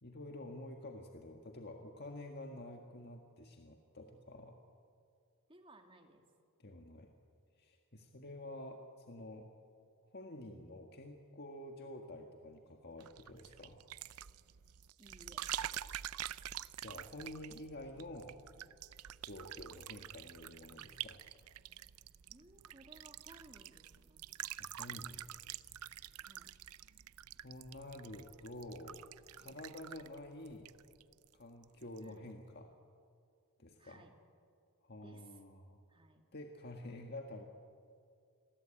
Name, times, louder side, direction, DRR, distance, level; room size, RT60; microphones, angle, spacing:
voice 1, 0.0-4.6 6.6-7.1 7.6-9.5 10.1-13.8 16.8-18.4 19.2-21.2 24.6-25.2 26.0-26.2 27.4-29.0 29.4-30.7 31.3-32.7 33.6-34.1 34.8-35.8 36.3-37.4, left 1 dB, 45° left, 3 dB, 1.7 m, -49 dB
voice 2, 5.5-6.3 15.0-15.5 16.2-16.7 22.3-24.3 26.2-26.5 32.0-32.3 33.8-34.1 35.0-35.4 35.9-36.2, right 2 dB, 25° right, 4 dB, 2.5 m, -60 dB
sound 1, 13.0-31.3 31.6-32.0, right 11 dB, 80° right, 0.6 m, -47 dB
28.5 x 22.0 x 8.9 m, 2.3 s
head